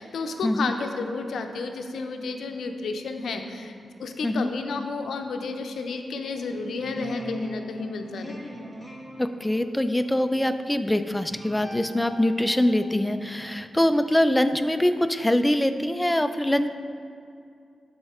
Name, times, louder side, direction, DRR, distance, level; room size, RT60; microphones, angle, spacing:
voice 1, 0.0-3.7 4.0-8.4, left 4 dB, 80° left, 5 dB, 0.6 m, -32 dB
sound 1, 6.3-14.3, equal, 10° right, 1.2 m, -41 dB
voice 2, 9.2-16.7, left 1 dB, 10° left, 9 dB, 0.4 m, -23 dB
12.0 x 4.4 x 3.6 m, 2.4 s
cardioid pair, 95°, 0 cm